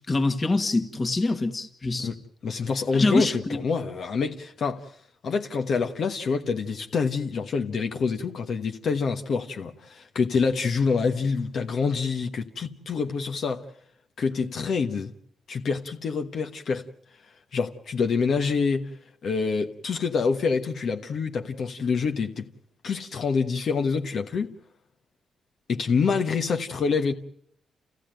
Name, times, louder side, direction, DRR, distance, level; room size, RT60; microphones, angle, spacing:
voice 1, 0.1-2.1 2.9-3.6, left 2 dB, 25° left, 1.8 m, -24 dB
voice 2, 2.4-5.0 5.2-13.7 14.2-15.1 15.5-16.9 17.5-22.5 22.8-24.5 25.7-27.1, left 5 dB, 55° left, 1.3 m, -26 dB
30.0 x 15.5 x 9.0 m
wide cardioid pair, 150°, 0 cm